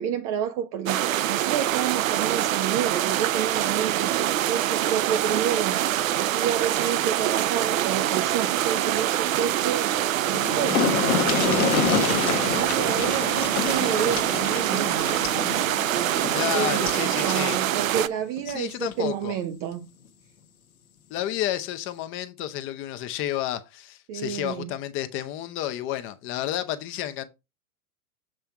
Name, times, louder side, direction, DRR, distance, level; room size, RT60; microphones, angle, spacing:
voice 1, 0.0-9.9 10.2-12.1 12.4-15.1 15.9-19.9 24.1-24.7, right 9 dB, 20° right, 0.4 m, -30 dB
sound 1, 0.9-18.1, right 12 dB, 65° right, 0.6 m, -25 dB
sound 2, 10.0-10.1 10.3-17.1 18.4-18.5 18.9-19.0, left 7 dB, 70° left, 1.1 m, -28 dB
voice 2, 16.3-17.6 18.5-19.4 21.1-27.2, left 12 dB, 30° left, 0.7 m, -31 dB
7.6 x 3.4 x 4.6 m
figure-of-eight pair, 100°, 44 cm